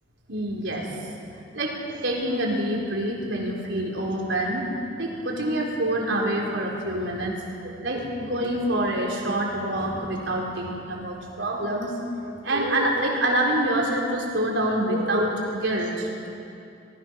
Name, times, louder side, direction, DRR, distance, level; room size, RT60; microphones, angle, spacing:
voice 1, 0.3-0.9 1.5-1.8 2.0-4.7 5.0-7.4 7.6-11.9 12.4-16.1, right 1 dB, 70° right, -1 dB, 4.3 m, -26 dB
24.5 x 19.5 x 6.5 m, 2.6 s
head